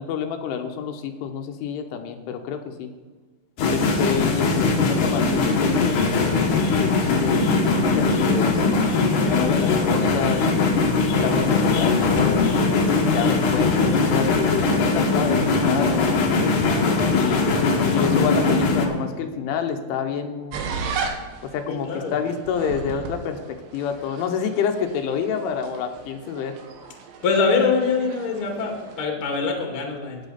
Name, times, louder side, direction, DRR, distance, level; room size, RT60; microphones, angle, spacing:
voice 1, 0.0-2.9 3.7-6.0 6.8-6.9 7.2-9.0 9.2-10.8 11.2-12.6 13.1-16.6 17.1-17.5 17.9-20.6 21.4-26.6, left 7 dB, 85° left, 5 dB, 3.5 m, -28 dB
sound 1, 3.6-18.9, left 3 dB, 60° left, 2.2 m, -20 dB
voice 2, 17.1-17.5 21.7-22.1 27.2-30.2, left 4 dB, 40° left, 1 dB, 1.9 m, -24 dB
sound 2, 20.5-29.0, right 5 dB, 80° right, 3.7 m, -36 dB
13.5 x 9.4 x 4.2 m, 1.4 s
omnidirectional pair, 5.5 m